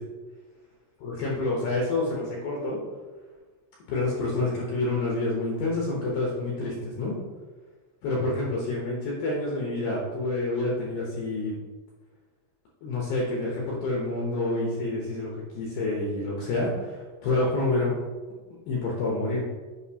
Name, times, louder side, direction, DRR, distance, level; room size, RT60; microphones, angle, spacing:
voice 1, 1.0-2.8 3.9-7.1 8.0-11.6 12.8-18.0 18.7-19.4, left 2 dB, 85° left, -4 dB, 2.1 m, -28 dB
8.0 x 5.1 x 2.8 m, 1.3 s
omnidirectional pair, 5.7 m